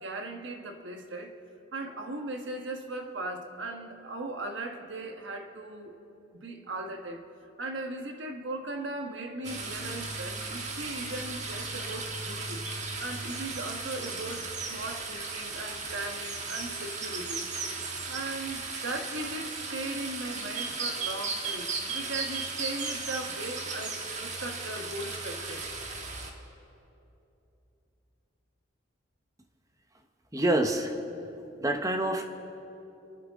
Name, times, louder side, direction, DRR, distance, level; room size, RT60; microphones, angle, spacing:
voice 1, 0.0-1.3 1.7-6.0 6.3-7.2 7.6-17.4 18.0-25.7, right 2 dB, 70° right, 4 dB, 1.5 m, -38 dB
sound 1, 9.4-26.3, right 3 dB, 35° right, 1.4 m, -36 dB
voice 2, 30.3-31.0 31.6-32.2, right 1 dB, 15° right, 5 dB, 0.9 m, -26 dB
30.0 x 11.5 x 3.7 m, 2.9 s
head